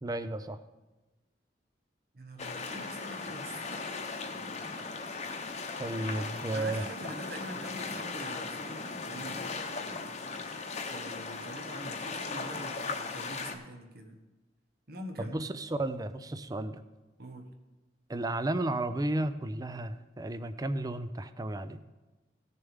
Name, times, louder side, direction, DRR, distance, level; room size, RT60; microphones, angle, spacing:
voice 1, 0.0-0.6 5.8-6.8 15.2-16.8 18.1-21.8, right 2 dB, 20° right, 12 dB, 0.5 m, -33 dB
voice 2, 2.1-4.4 6.5-9.5 9.8-14.2 14.9-15.4 17.2-17.5, right 1 dB, 60° right, 5 dB, 1.3 m, -45 dB
sound 1, 2.4-13.5, left 4 dB, 40° left, 0.9 m, -38 dB
17.0 x 6.7 x 3.6 m, 1.2 s
head